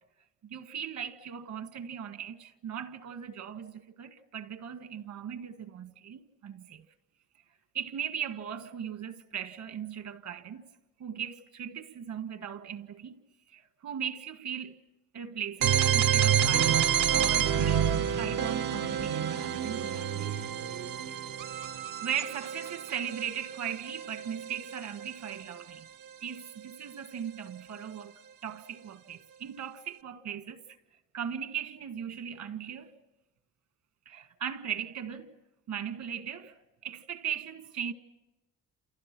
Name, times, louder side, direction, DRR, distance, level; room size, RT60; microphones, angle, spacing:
voice 1, 0.4-6.8 7.7-10.6 11.0-13.2 13.5-14.8 15.1-20.4 22.0-25.9 26.2-28.1 28.4-30.6 31.1-32.9 34.0-35.3 35.7-36.5 36.8-37.9, right 8 dB, 75° right, 1.7 m, -38 dB
sound 1, 15.6-25.3, right 9 dB, 90° right, 1.1 m, -28 dB
29.0 x 29.0 x 6.1 m
cardioid pair, 90°, 30 cm